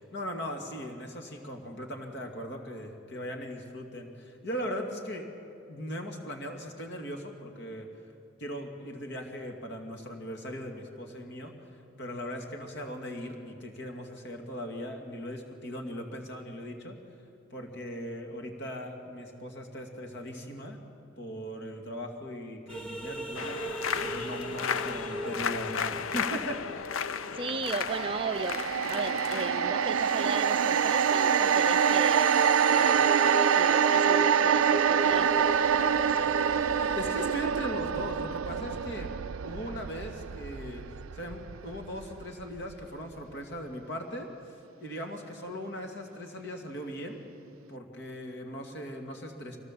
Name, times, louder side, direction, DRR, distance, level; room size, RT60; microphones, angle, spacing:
voice 1, 0.0-5.3 5.7-7.9 8.4-11.5 12.0-17.0 17.5-20.8 21.2-26.6 36.9-39.1 39.4-40.8 41.1-47.2 47.7-49.6, equal, 60° left, 3 dB, 2.4 m, -39 dB
sound 1, 22.7-29.1 29.5-37.4, right 1 dB, 5° left, 1.7 m, -38 dB
sound 2, 23.4-33.0, left 7 dB, 80° left, 0.6 m, -36 dB
voice 2, 27.3-28.6 28.9-32.3 32.7-36.3, right 4 dB, 25° right, 6 dB, 0.4 m, -36 dB
sound 3, 27.9-42.2 42.6-42.7, right 7 dB, 90° right, 0.4 m, -26 dB
24.0 x 18.0 x 7.6 m, 2.7 s
head